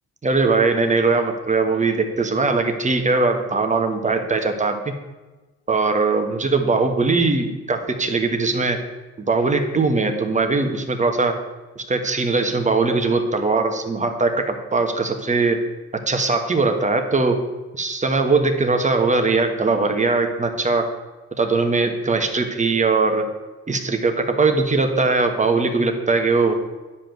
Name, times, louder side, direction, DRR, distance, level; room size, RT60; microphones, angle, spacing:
voice 1, 0.2-4.9 5.7-8.8 9.3-11.4 11.7-15.6 16.1-17.4 17.7-20.8 21.4-23.3 23.7-26.5, right 3 dB, 25° right, 5 dB, 1.5 m, -20 dB
10.0 x 5.2 x 7.7 m, 1.2 s
cardioid pair, 90°, 30 cm